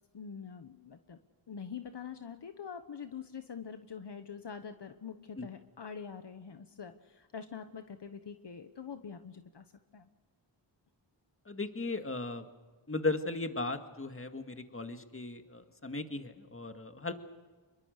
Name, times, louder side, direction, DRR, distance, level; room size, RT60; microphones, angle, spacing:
voice 1, 0.1-1.2 1.5-9.6 9.9-10.1, left 6 dB, 60° left, 8 dB, 1.3 m, -45 dB
voice 2, 11.5-12.4 12.9-17.1, left 3 dB, 30° left, 7 dB, 2.0 m, -36 dB
26.0 x 22.5 x 6.6 m, 1.4 s
wide cardioid pair, 70°, 46 cm